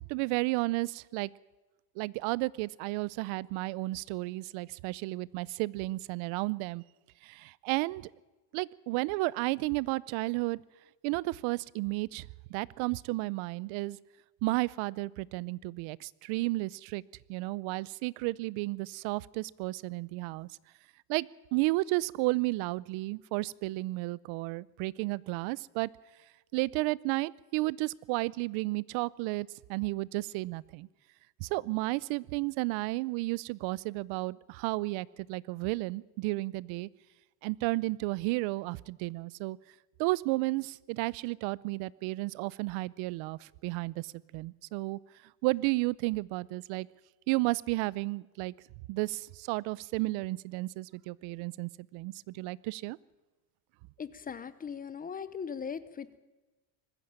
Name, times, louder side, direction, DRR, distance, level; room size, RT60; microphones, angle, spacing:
voice 1, 0.1-1.3 2.0-6.8 7.2-8.1 8.5-10.6 11.0-14.0 14.4-17.0 17.3-20.5 21.1-25.9 26.5-30.9 31.4-36.9 37.4-39.6 40.0-45.0 45.4-46.9 47.3-48.5 48.9-53.0, right 22 dB, 75° right, 23 dB, 0.7 m, -32 dB
voice 2, 54.0-56.2, left 6 dB, 20° left, 15 dB, 0.6 m, -39 dB
20.5 x 15.0 x 8.8 m, 1.1 s
cardioid pair, 160°, 48 cm